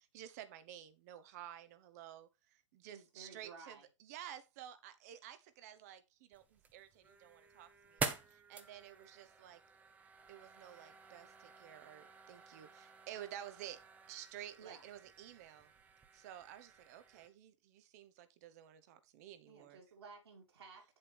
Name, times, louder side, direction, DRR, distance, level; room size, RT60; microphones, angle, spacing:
voice 1, 0.1-9.6 10.3-15.7 16.1-19.8, right 11 dB, 30° right, 1.1 m, -52 dB
voice 2, 2.9-3.9 14.6-14.8 19.5-20.8, right 5 dB, 55° right, 4.3 m, -55 dB
sound 1, 6.3-17.3, right 5 dB, 10° right, 0.8 m, -48 dB
8.5 x 7.8 x 3.5 m
figure-of-eight pair, 130°, 16 cm